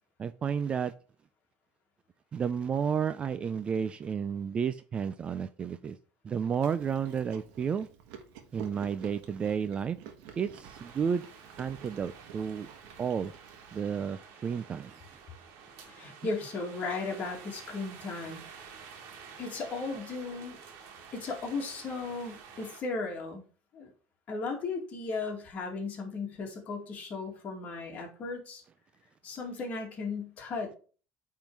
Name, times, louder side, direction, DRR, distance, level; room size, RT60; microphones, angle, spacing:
voice 1, 0.2-0.9 2.3-6.0 6.2-7.9 8.5-10.0 10.4-11.2 11.6-12.7 13.0-13.3 13.7-15.0, right 7 dB, 25° right, 0.3 m, -31 dB
Chewing mastication, 6.6-13.8, right 8 dB, 80° right, 1.3 m, -50 dB
sound 1, 10.6-22.8, right 6 dB, 60° right, 1.7 m, -50 dB
voice 2, 15.9-18.4 19.4-20.6 21.1-23.4 23.7-23.9 24.3-28.6 29.2-30.8, left 3 dB, 35° left, 2.1 m, -36 dB
9.1 x 3.7 x 4.7 m
cardioid pair, 155°, 5 cm